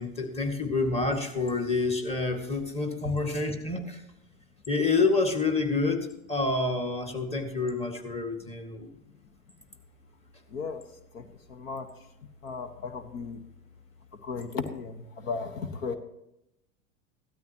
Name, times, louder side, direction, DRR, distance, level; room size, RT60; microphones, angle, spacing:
voice 1, 0.0-4.0 4.7-8.9, left 3 dB, 15° left, 4 dB, 2.0 m, -28 dB
voice 2, 10.5-10.8 11.1-11.2 11.5-11.9 12.4-13.4 14.2-15.9, left 5 dB, 65° left, 9 dB, 1.4 m, -35 dB
17.0 x 13.0 x 3.0 m, 0.84 s
hypercardioid pair, 90°, 43 cm